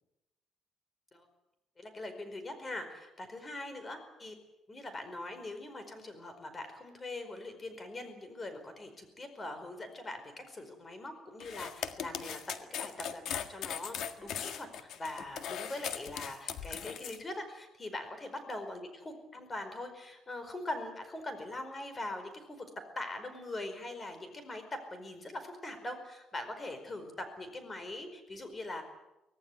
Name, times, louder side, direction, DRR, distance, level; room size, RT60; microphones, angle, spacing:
voice 1, 1.8-4.3 4.7-28.8, left 2 dB, 20° left, 8 dB, 4.8 m, -42 dB
sound 1, 11.4-17.2, left 9 dB, 65° left, 1.8 m, -39 dB
25.0 x 17.5 x 9.4 m, 0.93 s
cardioid pair, 150°, 0 cm